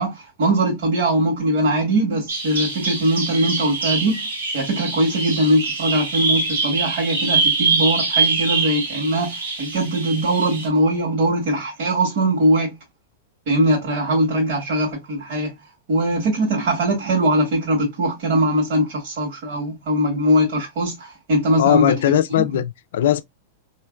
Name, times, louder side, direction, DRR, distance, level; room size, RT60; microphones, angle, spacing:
voice 1, 0.0-4.3 4.5-12.7 13.5-15.5 15.9-22.5, right 1 dB, 60° right, 1.3 m, -21 dB
Bird vocalization bird call bird song, 2.3-10.7, right 4 dB, 90° right, 1.3 m, -24 dB
voice 2, 21.6-23.2, left 11 dB, 75° left, 0.3 m, -19 dB
3.1 x 2.6 x 2.3 m
hypercardioid pair, 120°, 0 cm